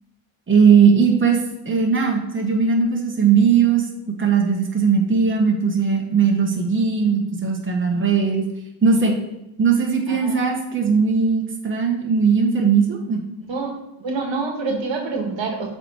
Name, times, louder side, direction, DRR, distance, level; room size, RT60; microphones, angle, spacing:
voice 1, 0.5-1.4 1.6-3.9 4.2-8.5 8.8-9.2 9.6-13.2, right 6 dB, 25° right, 0 dB, 1.4 m, -18 dB
voice 2, 10.1-10.4 13.5-15.7, right 4 dB, 65° right, 2 dB, 1.5 m, -27 dB
7.6 x 3.5 x 4.7 m, 0.90 s
cardioid pair, 75°, 48 cm